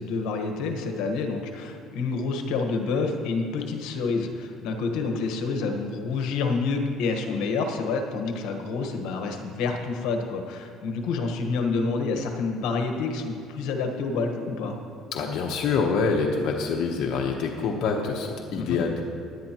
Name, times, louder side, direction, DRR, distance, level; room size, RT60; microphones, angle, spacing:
voice 1, 0.0-14.8 18.6-18.8, left 4 dB, 80° left, 4 dB, 1.3 m, -28 dB
voice 2, 15.1-19.0, left 5 dB, 65° left, 0 dB, 1.0 m, -26 dB
17.0 x 11.0 x 3.0 m, 2.3 s
cardioid pair, 110°, 0 cm